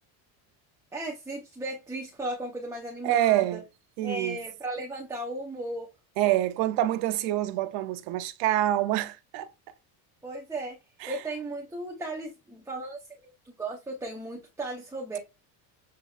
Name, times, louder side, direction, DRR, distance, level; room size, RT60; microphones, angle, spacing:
voice 1, 0.9-3.6 4.0-5.9 10.2-10.8 11.1-15.2, right 2 dB, 5° right, 0.7 m, -36 dB
voice 2, 3.0-3.6 4.0-4.4 6.2-9.5 11.0-11.1, right 14 dB, 65° right, 0.7 m, -26 dB
7.6 x 2.7 x 2.4 m
cardioid pair, 140°, 50 cm